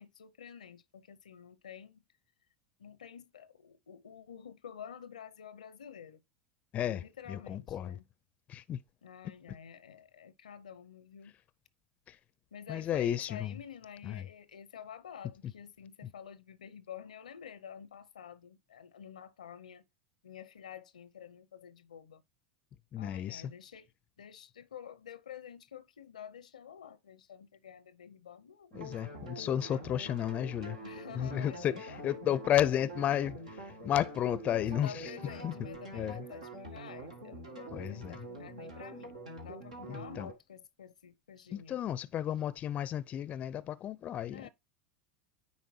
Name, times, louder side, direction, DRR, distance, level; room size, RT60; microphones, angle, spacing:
voice 1, 0.0-2.0 2.8-6.2 6.9-8.0 9.0-11.3 12.5-19.8 20.2-22.2 23.0-23.9 24.2-29.8 30.8-32.3 34.5-41.8 44.3-44.5, left 8 dB, 90° left, 0.6 m, -49 dB
voice 2, 7.3-8.0 8.5-8.8 12.1-12.2 12.7-13.5 14.0-14.2 22.9-23.5 28.7-30.8 31.2-35.1 35.4-35.5 35.9-36.2 37.7-38.2 39.9-40.3 41.5-44.5, left 11 dB, 40° left, 0.4 m, -33 dB
sound 1, 28.7-40.3, right 2 dB, 90° right, 1.8 m, -46 dB
9.5 x 4.2 x 2.7 m
hypercardioid pair, 90°, 4 cm